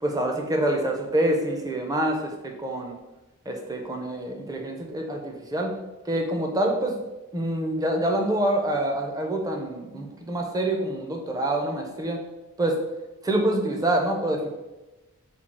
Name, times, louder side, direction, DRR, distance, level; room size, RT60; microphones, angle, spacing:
voice 1, 0.0-3.0 3.5-5.8 6.1-7.0 7.3-12.2 12.6-12.8 13.2-14.5, right 1 dB, 15° right, 2 dB, 0.5 m, -26 dB
4.3 x 2.3 x 4.4 m, 1.1 s
head